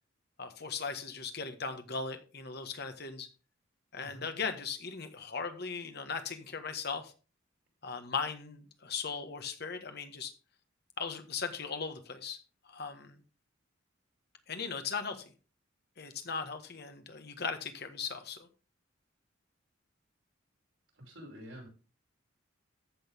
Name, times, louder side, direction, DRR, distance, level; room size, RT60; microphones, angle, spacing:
voice 1, 0.4-3.3 3.9-7.1 7.8-10.3 11.0-12.4 12.6-13.2 14.5-15.2 16.0-18.5, left 5 dB, 55° left, 7 dB, 1.5 m, -38 dB
voice 2, 21.0-21.7, equal, 80° right, -1 dB, 5.7 m, -48 dB
14.5 x 6.4 x 3.6 m, 0.35 s
head